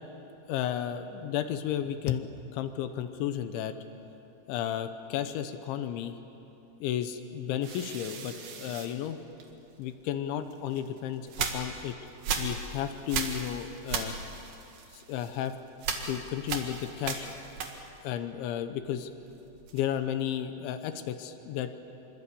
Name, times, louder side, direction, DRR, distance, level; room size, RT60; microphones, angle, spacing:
voice 1, 0.5-3.8 4.5-6.2 6.8-9.2 9.8-12.0 12.4-14.1 14.9-15.5 16.1-17.3 18.0-19.1 19.7-21.8, left 10 dB, 80° left, 9 dB, 3.1 m, -33 dB
sound 1, 7.6-9.8 10.5-18.1 18.4-20.1, right 5 dB, 55° right, 2.9 m, -37 dB
26.0 x 24.5 x 8.6 m, 3.0 s
omnidirectional pair, 5.7 m